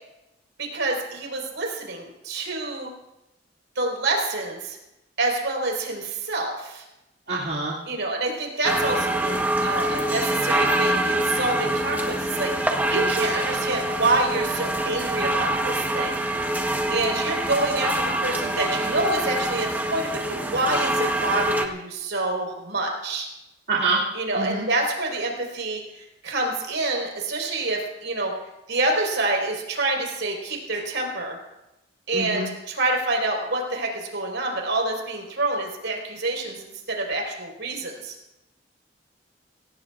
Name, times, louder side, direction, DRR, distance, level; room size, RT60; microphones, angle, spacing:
voice 1, 0.6-2.9 3.8-4.8 5.2-6.8 7.9-9.4 9.6-16.1 16.9-23.3 24.1-28.3 28.7-31.4 32.1-38.1, right 2 dB, 80° right, 0 dB, 4.4 m, -27 dB
voice 2, 7.3-7.7 23.7-24.0 24.4-24.7 32.1-32.5, right 3 dB, 60° right, -6 dB, 2.4 m, -25 dB
sound 1, 8.6-21.7, right 1 dB, 10° right, 1.1 m, -25 dB
24.0 x 17.5 x 2.5 m, 0.92 s
head